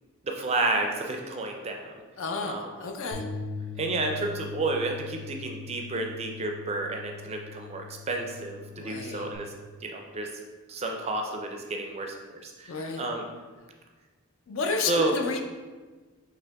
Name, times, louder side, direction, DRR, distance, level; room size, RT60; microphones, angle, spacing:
voice 1, 0.2-1.9 2.5-2.7 3.8-9.5 9.8-10.3 10.7-12.2 12.4-13.3 14.9-15.1, right 2 dB, 30° right, 3 dB, 0.4 m, -31 dB
voice 2, 2.2-3.2 8.8-9.3 12.7-13.1 14.5-15.4, left 4 dB, 60° left, 3 dB, 0.5 m, -31 dB
Bass guitar, 3.1-9.4, left 5 dB, 80° left, 0.8 m, -41 dB
5.0 x 2.9 x 3.4 m, 1.4 s
head